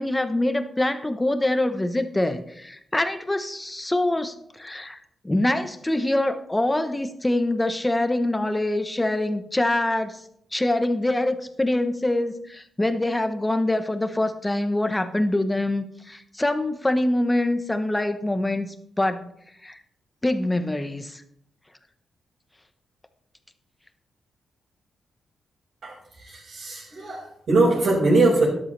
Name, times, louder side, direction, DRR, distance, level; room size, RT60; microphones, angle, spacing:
voice 1, 0.0-10.2 10.5-19.3 19.6-19.8 20.2-21.2, left 1 dB, 15° left, 9 dB, 1.1 m, -25 dB
voice 2, 25.8-28.5, right 2 dB, 60° right, -8 dB, 5.0 m, -22 dB
13.0 x 11.5 x 3.3 m, 0.72 s
cardioid pair, 105°, 0 cm